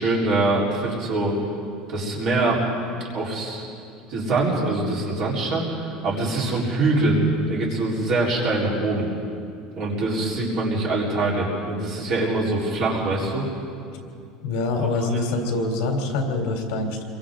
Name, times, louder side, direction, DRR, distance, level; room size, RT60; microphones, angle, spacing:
voice 1, 0.0-1.4 1.9-2.7 3.1-3.7 4.1-7.2 7.5-9.1 9.8-13.4 15.0-15.2, right 2 dB, 35° right, -4 dB, 4.2 m, -24 dB
voice 2, 14.4-17.0, left 2 dB, 60° left, 2 dB, 3.5 m, -25 dB
29.0 x 23.5 x 3.9 m, 2.4 s
cardioid pair, 180°, 0 cm